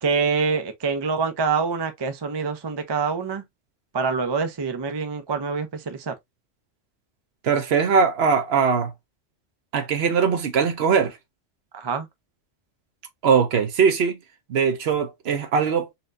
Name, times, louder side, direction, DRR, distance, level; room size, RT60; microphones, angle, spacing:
voice 1, 0.0-3.4 3.9-6.1 11.7-12.1, right 5 dB, 35° right, 0.4 m, -25 dB
voice 2, 7.4-8.9 9.7-11.2 13.2-14.2 14.5-15.9, right 6 dB, 65° right, 0.9 m, -21 dB
4.2 x 2.2 x 2.5 m
omnidirectional pair, 1.2 m